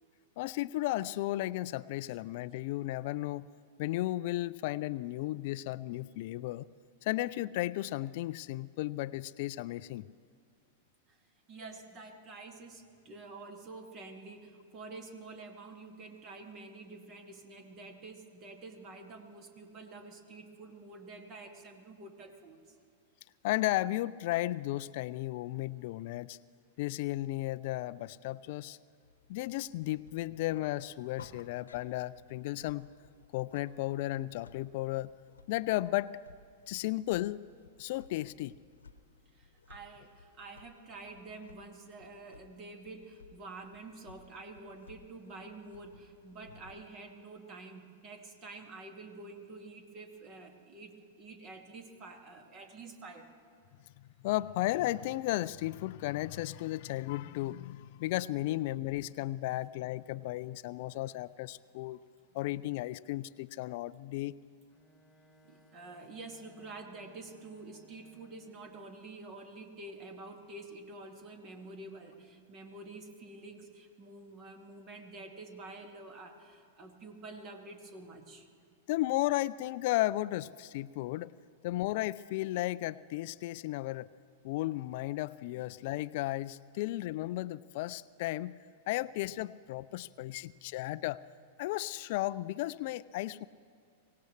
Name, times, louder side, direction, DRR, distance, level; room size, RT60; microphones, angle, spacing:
voice 1, 0.4-3.5 3.8-6.7 7.0-10.0 23.4-26.4 26.8-28.8 29.3-32.9 33.3-35.1 35.5-36.2 36.7-37.4 37.8-38.5 54.2-62.0 62.3-64.3 78.9-81.3 81.6-84.1 84.4-88.5 88.9-91.2 91.6-93.4, left 17 dB, 55° left, 17 dB, 0.3 m, -34 dB
voice 2, 11.5-22.8 39.3-53.3 58.5-58.6 65.4-78.5 89.9-91.0, right 3 dB, 35° right, 4 dB, 2.2 m, -48 dB
sound 1, 29.0-46.8, left 4 dB, 85° left, 1.0 m, -59 dB
Bowed string instrument, 64.7-68.8, left 1 dB, ahead, 2.4 m, -62 dB
24.0 x 18.0 x 3.2 m, 2.4 s
hypercardioid pair, 105°, 0 cm